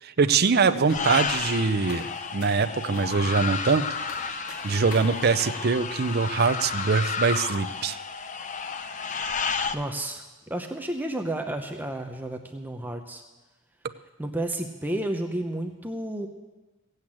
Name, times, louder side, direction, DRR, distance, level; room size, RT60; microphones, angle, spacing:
voice 1, 0.0-3.9 4.2-4.4 4.6-8.0, right 4 dB, 45° right, 11 dB, 0.6 m, -23 dB
sound 1, 0.9-7.1 7.4-7.5, left 2 dB, 75° left, 2.9 m, -45 dB
sound 2, 0.9-9.7, left 5 dB, 35° left, 0.6 m, -32 dB
voice 2, 9.7-13.2 14.2-16.3, right 1 dB, 10° right, 4 dB, 0.7 m, -31 dB
15.5 x 8.1 x 8.7 m, 1.2 s
head